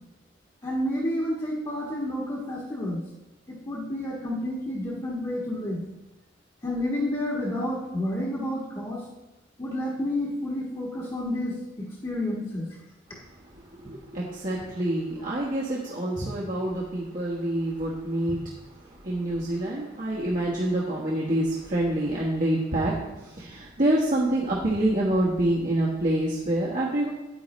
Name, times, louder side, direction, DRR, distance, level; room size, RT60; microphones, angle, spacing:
voice 1, 0.6-3.0 3.5-5.8 6.6-9.0 9.6-12.7 16.2-16.3 18.3-18.4, left 1 dB, 25° left, -6 dB, 1.4 m, -30 dB
voice 2, 13.5-27.1, right 1 dB, 45° right, -6 dB, 1.4 m, -27 dB
9.5 x 9.4 x 3.2 m, 1.0 s
head